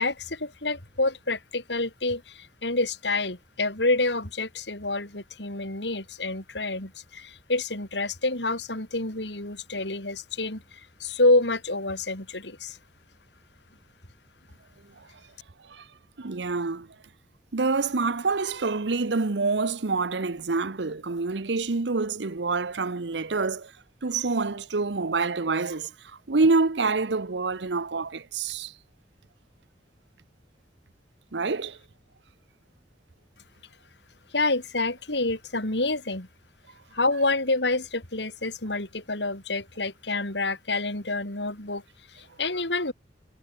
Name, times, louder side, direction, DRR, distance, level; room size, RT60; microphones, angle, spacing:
voice 1, 0.0-12.8 34.3-36.3 36.9-41.8 42.1-42.9, left 2 dB, 70° left, 4.9 m, -28 dB
voice 2, 16.2-16.9 17.5-23.7 24.0-28.7 31.3-31.8, right 3 dB, 70° right, 0.9 m, -27 dB
head